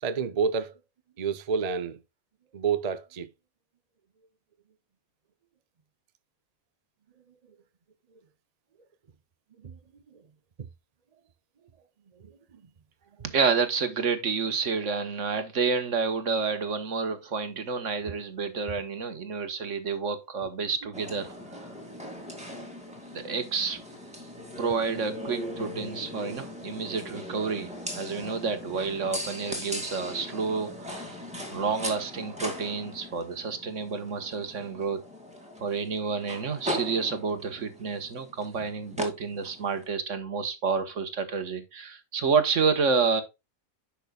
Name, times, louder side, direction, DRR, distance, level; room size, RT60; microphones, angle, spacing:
voice 1, 0.0-0.7 1.2-2.0 2.5-3.3 9.6-9.7 12.2-12.3, right 6 dB, 40° right, 0.6 m, -28 dB
voice 2, 13.2-21.4 23.1-23.8 24.6-31.2 31.5-35.0 35.6-43.2, right 5 dB, 60° right, 1.6 m, -29 dB
sound 1, 20.9-39.8, equal, 5° right, 2.2 m, -39 dB
10.5 x 6.1 x 2.3 m
omnidirectional pair, 1.5 m